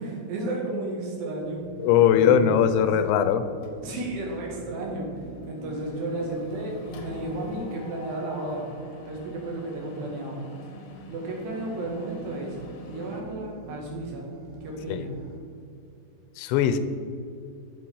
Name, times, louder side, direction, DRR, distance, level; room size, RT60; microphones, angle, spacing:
voice 1, 0.0-1.6 2.1-2.9 3.8-5.1 5.5-8.7 9.1-10.4 11.1-12.6 12.9-14.3 14.6-15.1, right 2 dB, 70° right, -1 dB, 3.9 m, -33 dB
sound 1, 1.4-15.4, right 1 dB, 45° right, 1.6 m, -48 dB
voice 2, 1.8-3.4 14.9-15.1 16.4-16.8, left 9 dB, 85° left, 11 dB, 2.9 m, -20 dB
Mechanisms, 3.6-4.2 4.6-4.8 5.0-13.2, left 2 dB, 70° left, 1.8 m, -45 dB
14.0 x 4.9 x 5.6 m, 2.5 s
omnidirectional pair, 5.1 m